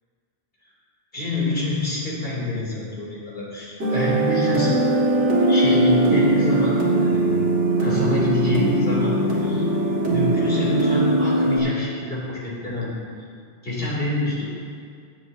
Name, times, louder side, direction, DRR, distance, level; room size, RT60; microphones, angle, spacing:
voice 1, 1.1-4.7 5.5-7.4 7.8-9.7 10.0-13.0 13.6-14.4, left 1 dB, 50° left, -7 dB, 3.3 m, -26 dB
sound 1, 3.8-11.6, right 1 dB, 75° right, 2.3 m, -20 dB
17.0 x 8.6 x 2.8 m, 2.2 s
omnidirectional pair, 1.2 m